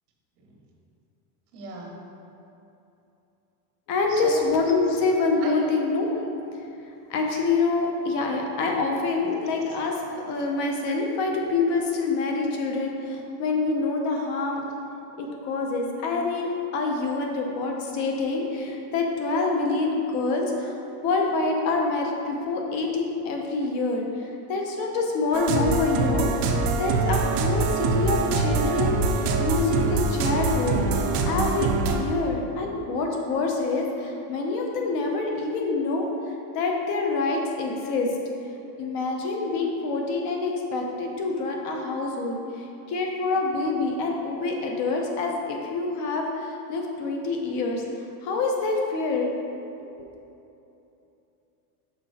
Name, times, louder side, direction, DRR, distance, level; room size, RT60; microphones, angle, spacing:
voice 1, 1.5-2.0 4.1-4.5 5.4-5.8 9.2-9.6, right 4 dB, 90° right, -1 dB, 1.3 m, -38 dB
voice 2, 3.9-6.3 7.1-14.6 15.2-16.5 16.7-20.8 21.0-36.1 36.5-38.1 38.8-47.8 48.2-49.3, left 3 dB, 40° left, 1 dB, 0.8 m, -26 dB
sound 1, 25.3-32.0, right 3 dB, 55° right, 0.6 m, -24 dB
6.1 x 4.5 x 4.1 m, 2.9 s
supercardioid pair, 165°, 46 cm